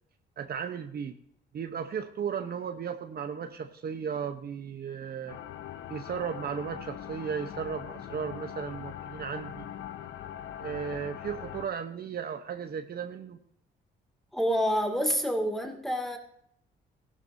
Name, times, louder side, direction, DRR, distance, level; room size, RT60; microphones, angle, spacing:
voice 1, 0.4-1.2 1.5-5.4 5.9-9.7 10.6-13.4, right 7 dB, 50° right, 7 dB, 1.0 m, -35 dB
sound 1, 5.3-11.7, left 10 dB, 80° left, 0.8 m, -41 dB
voice 2, 14.3-16.2, equal, ahead, 3 dB, 2.4 m, -27 dB
15.5 x 12.0 x 2.7 m, 0.67 s
cardioid pair, 90°, 20 cm